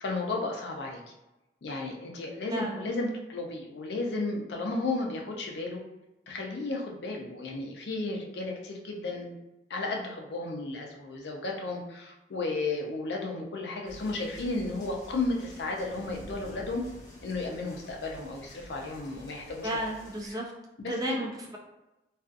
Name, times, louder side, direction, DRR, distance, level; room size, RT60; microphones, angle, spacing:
voice 1, 0.0-1.0 1.6-5.8 6.3-9.4 9.7-16.8 17.2-19.8 20.3-20.4 20.8-21.3, left 2 dB, 75° left, 1 dB, 0.5 m, -33 dB
voice 2, 2.5-2.9 19.6-20.5 20.9-21.6, equal, 20° right, -1 dB, 0.4 m, -32 dB
sound 1, 13.9-20.3, equal, 20° left, 0.6 m, -49 dB
2.5 x 2.4 x 2.4 m, 0.99 s
head